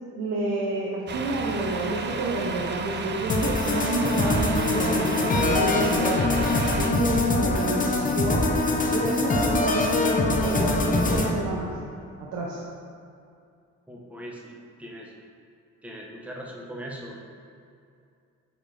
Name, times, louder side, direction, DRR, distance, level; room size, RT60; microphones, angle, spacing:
voice 1, 0.1-6.2 6.7-8.4 8.9-11.7 12.2-12.6, right 2 dB, 85° right, -4 dB, 0.9 m, -29 dB
Truck, 1.1-6.9, right 5 dB, 35° right, 0.5 m, -33 dB
sound 1, 3.3-11.3, left 2 dB, 25° left, 0.7 m, -23 dB
voice 2, 13.9-15.1 15.8-17.2, equal, 5° right, -2 dB, 1.0 m, -40 dB
7.8 x 4.3 x 3.3 m, 2.4 s
cardioid pair, 90°, 30 cm